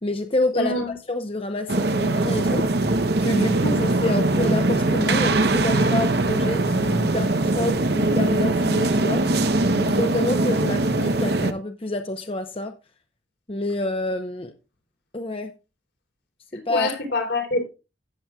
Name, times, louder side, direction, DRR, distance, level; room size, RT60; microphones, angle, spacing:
voice 1, 0.0-0.8 1.1-9.3 9.7-12.7 13.5-14.5 15.1-15.5 16.5-16.9, left 2 dB, 30° left, 0.8 m, -28 dB
voice 2, 0.5-0.9 16.7-17.6, left 2 dB, 85° left, 3.9 m, -25 dB
sound 1, 1.7-11.5, right 2 dB, 60° right, 0.9 m, -21 dB
15.5 x 7.7 x 2.3 m
head